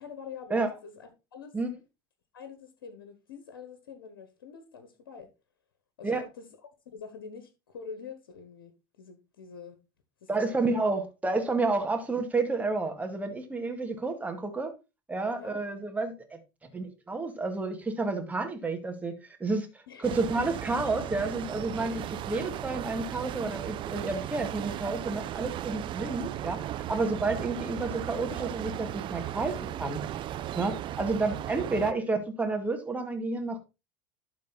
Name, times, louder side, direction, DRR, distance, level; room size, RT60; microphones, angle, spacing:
voice 1, 0.0-1.6 2.3-5.3 6.0-6.5 6.8-8.7 9.0-9.8 10.2-10.6 15.4-15.6 19.9-20.0 28.1-28.3, left 6 dB, 85° left, 1.4 m, -45 dB
voice 2, 10.3-14.7 15.1-26.6 26.9-30.0 30.5-33.6, right 3 dB, 15° right, 2.1 m, -30 dB
sound 1, 20.0-31.9, right 12 dB, 45° right, 0.8 m, -36 dB
11.5 x 4.2 x 4.2 m
hypercardioid pair, 90°, 12 cm